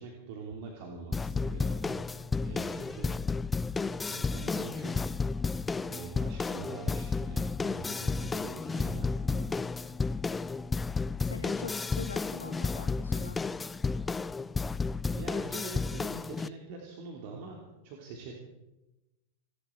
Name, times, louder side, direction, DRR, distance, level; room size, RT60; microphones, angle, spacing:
voice 1, 0.0-2.0 2.4-3.1 4.1-5.1 5.9-9.5 15.1-18.3, right 4 dB, 45° right, 0 dB, 2.9 m, -44 dB
sound 1, 1.1-16.5, left 4 dB, 15° left, 0.4 m, -32 dB
voice 2, 11.2-13.4, left 4 dB, 75° left, 9 dB, 1.4 m, -43 dB
28.0 x 11.5 x 4.5 m, 1.0 s
figure-of-eight pair, 90°, 0 cm